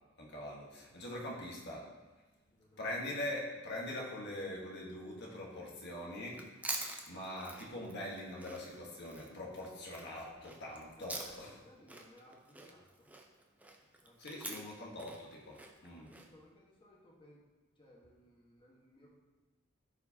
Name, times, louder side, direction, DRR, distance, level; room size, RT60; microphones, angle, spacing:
voice 1, 0.2-2.0 2.8-11.5 14.2-16.1, left 1 dB, 60° left, -3 dB, 1.5 m, -43 dB
voice 2, 2.5-2.8 10.9-13.1 14.0-14.3 15.9-17.4 17.7-19.1, left 1 dB, 25° left, -4 dB, 1.5 m, -61 dB
Chewing mastication, 6.3-11.6 11.9-16.3, right 2 dB, 10° right, 0.7 m, -46 dB
13.5 x 4.7 x 2.9 m, 1.2 s
head